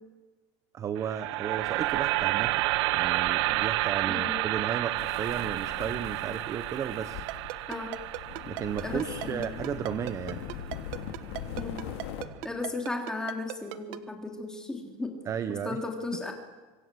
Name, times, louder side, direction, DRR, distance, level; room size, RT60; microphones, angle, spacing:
voice 1, 0.7-2.6 2.9-7.2 8.5-10.4 15.3-15.8 16.1-16.2, right 8 dB, 20° right, 11 dB, 0.8 m, -34 dB
sound 1, 1.0-11.1, right 18 dB, 85° right, 0.7 m, -30 dB
voice 2, 4.0-4.4 7.7-8.0 8.8-9.6 11.6-11.8 12.4-15.1 15.6-16.3, left 3 dB, 5° left, 2 dB, 3.3 m, -35 dB
sound 2, 5.0-12.2, left 9 dB, 75° left, 3.1 m, -41 dB
Ringtone, 7.3-14.0, right 19 dB, 55° right, 1.3 m, -36 dB
25.5 x 24.5 x 7.8 m, 1.3 s
cardioid pair, 170°, 14 cm